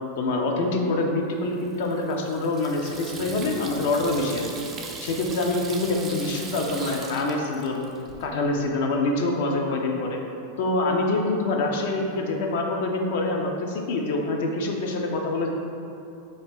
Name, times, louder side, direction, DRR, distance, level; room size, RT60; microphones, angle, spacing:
voice 1, 0.2-4.5 5.0-7.8 8.2-10.2 10.6-15.5, left 2 dB, 50° left, 1 dB, 0.4 m, -25 dB
Water tap faucet / Sink (filling or washing), 1.5-8.3, right 3 dB, 25° right, 0.4 m, -39 dB
4.1 x 2.5 x 3.4 m, 2.7 s
figure-of-eight pair, 90°, 0 cm